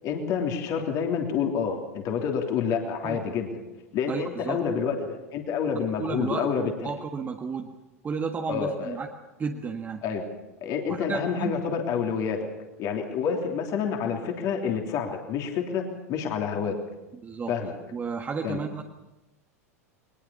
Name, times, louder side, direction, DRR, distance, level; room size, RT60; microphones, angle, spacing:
voice 1, 0.0-3.5 3.9-6.7 8.5-9.0 10.0-10.2 10.6-12.5 12.8-15.8 16.1-16.8 17.5-17.7 18.4-18.6, left 6 dB, 45° left, 3 dB, 3.1 m, -28 dB
voice 2, 4.1-4.6 6.0-7.7 8.0-9.1 9.4-10.0 10.9-11.6 17.1-17.5 17.9-18.8, right 5 dB, 20° right, 3 dB, 1.6 m, -32 dB
22.0 x 20.5 x 7.0 m, 0.96 s
figure-of-eight pair, 85°, 8 cm